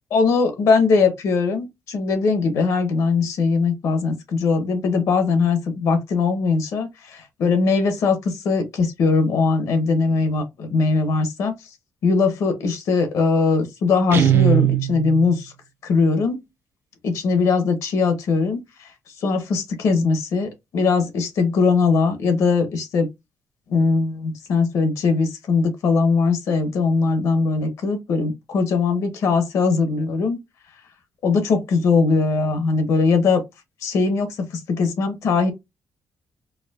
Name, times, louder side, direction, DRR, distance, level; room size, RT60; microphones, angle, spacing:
voice 1, 0.1-11.5 12.0-15.5 15.8-16.4 17.0-18.9 19.2-23.1 23.7-30.4 31.2-33.4 33.8-35.5, left 4 dB, 70° left, 0.9 m, -20 dB
Guitar, 14.1-15.4, right 12 dB, 45° right, 0.4 m, -19 dB
4.6 x 2.1 x 2.3 m
cardioid pair, 165°, 6 cm